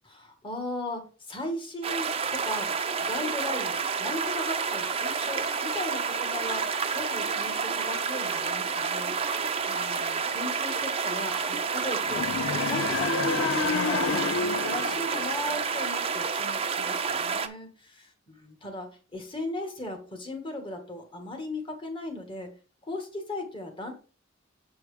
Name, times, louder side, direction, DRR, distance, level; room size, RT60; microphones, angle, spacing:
voice 1, 0.2-12.3 12.6-22.5 22.8-23.9, left 1 dB, 25° left, 4 dB, 1.9 m, -37 dB
sound 1, 1.8-17.5, right 5 dB, 30° right, 0.7 m, -29 dB
sound 2, 12.0-16.1, left 5 dB, 75° left, 0.5 m, -30 dB
8.0 x 4.6 x 5.0 m, 0.36 s
head